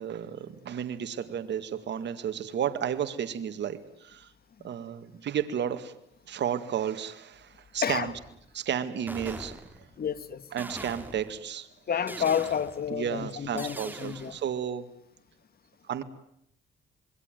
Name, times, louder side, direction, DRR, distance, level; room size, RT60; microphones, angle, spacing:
voice 1, 0.0-4.3 4.6-6.0 6.3-8.1 8.5-9.6 10.5-11.7 12.9-14.9 15.9-16.0, right 9 dB, 60° right, 2.1 m, -32 dB
voice 2, 7.8-8.1 10.0-10.5 11.9-14.4, left 8 dB, 50° left, 1.9 m, -30 dB
sound 1, 8.1-8.5 9.1-10.0 10.6-11.4 12.1-12.9 13.6-14.4, right 1 dB, 10° right, 3.5 m, -42 dB
26.5 x 22.0 x 9.2 m
cardioid pair, 90°, 20 cm